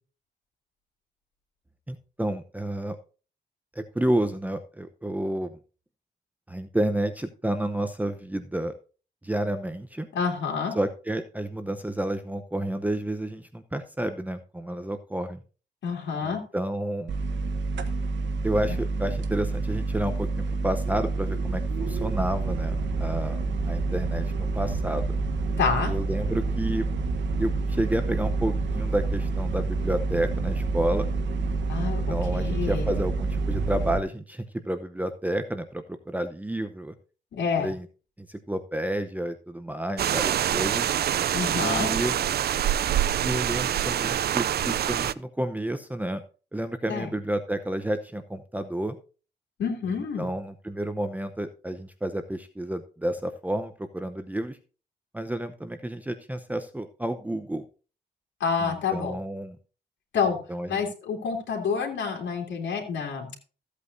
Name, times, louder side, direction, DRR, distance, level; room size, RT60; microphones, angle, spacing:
voice 1, 1.9-3.0 3.7-5.6 6.5-8.7 9.2-10.1 10.7-15.4 16.2-17.1 18.4-25.1 25.8-26.9 27.4-31.1 31.8-36.9 37.5-37.9 38.3-40.9 41.6-42.2 43.2-46.2 46.5-49.0 49.9-54.6 55.1-57.6 58.6-59.6 60.5-60.8, right 1 dB, 10° right, 8 dB, 0.8 m, -30 dB
voice 2, 10.1-10.7 15.8-16.4 25.6-25.9 31.7-33.0 37.3-37.7 41.3-41.9 46.9-47.1 49.6-50.3 58.4-59.2 60.1-60.4 60.7-63.4, left 6 dB, 85° left, -1 dB, 2.7 m, -28 dB
sound 1, 17.1-34.0, right 3 dB, 90° right, 1.2 m, -28 dB
sound 2, 40.0-45.1, right 10 dB, 60° right, 0.4 m, -25 dB
15.0 x 8.3 x 2.7 m, 0.35 s
wide cardioid pair, 120°, 18 cm